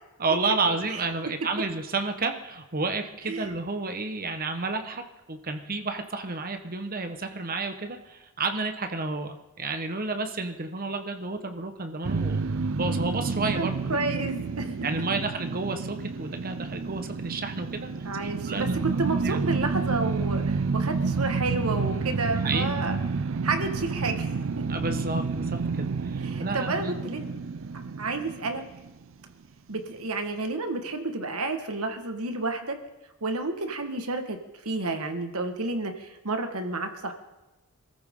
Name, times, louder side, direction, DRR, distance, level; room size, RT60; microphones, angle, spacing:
voice 1, 0.2-5.0 5.3-12.4 12.7-14.3 14.8-17.9 18.2-18.8 19.2-19.4 22.4-22.7 24.7-27.0, right 3 dB, 40° right, 6 dB, 1.3 m, -31 dB
sound 1, 12.0-29.2, right 4 dB, 60° right, 0.5 m, -30 dB
voice 2, 13.6-14.7 18.0-23.0 23.4-24.3 24.6-24.7 26.2-27.3 28.0-28.6 29.7-32.8 33.2-37.1, right 3 dB, 80° right, 5 dB, 1.7 m, -30 dB
26.0 x 14.0 x 3.8 m, 1.0 s
head